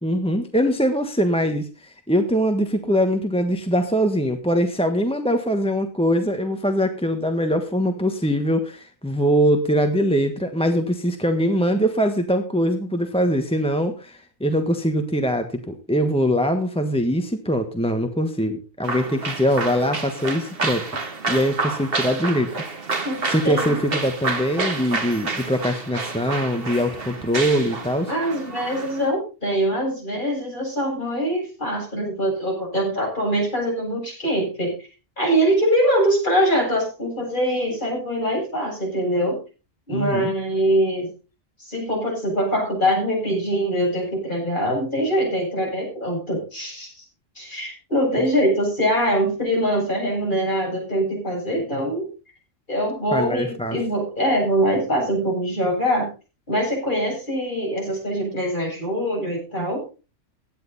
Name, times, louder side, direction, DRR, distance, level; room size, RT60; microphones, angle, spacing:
voice 1, 0.0-22.6 23.3-28.1 39.9-40.3 53.1-53.8, equal, 5° left, 5 dB, 1.3 m, -22 dB
sound 1, 18.8-29.1, right 3 dB, 45° right, 1.9 m, -29 dB
voice 2, 23.0-23.8 28.1-34.9 35.2-39.4 39.9-41.1 41.6-47.0 47.3-52.1 52.7-56.1 56.5-59.8, equal, 35° left, -2 dB, 8.3 m, -23 dB
16.5 x 10.5 x 4.2 m, 0.33 s
omnidirectional pair, 1.4 m